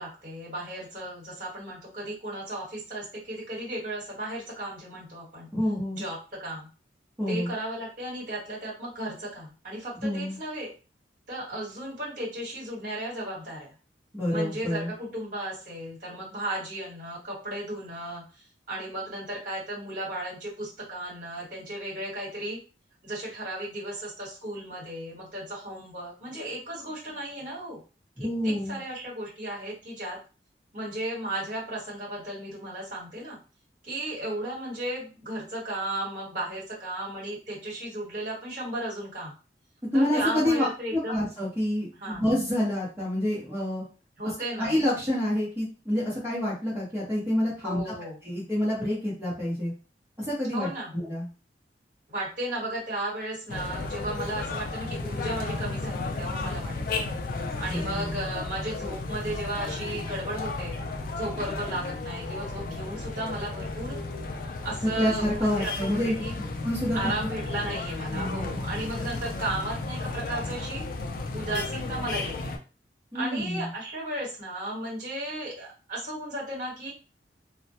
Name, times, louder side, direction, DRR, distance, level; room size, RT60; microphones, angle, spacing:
voice 1, 0.0-5.5 5.9-6.7 7.3-10.7 11.3-13.7 14.3-22.6 23.0-27.8 28.2-30.2 30.7-33.4 33.8-39.3 39.9-41.3 42.0-42.3 44.2-44.7 47.6-48.2 50.5-50.9 52.1-57.0 57.6-60.8 61.1-64.0 64.6-66.4 66.9-70.8 71.3-72.6 73.1-76.9, right 1 dB, 50° right, -4 dB, 1.2 m, -35 dB
voice 2, 5.5-6.0 7.2-7.5 10.0-10.4 14.1-14.9 28.2-28.8 39.9-43.8 44.6-47.9 48.2-49.7 50.3-51.3 57.7-58.2 64.8-66.1 66.6-67.0 68.1-68.5 73.1-73.7, left 1 dB, 15° right, -9 dB, 0.7 m, -28 dB
sound 1, 53.5-72.6, left 3 dB, 50° left, 0.3 m, -34 dB
2.1 x 2.1 x 2.7 m, 0.34 s
head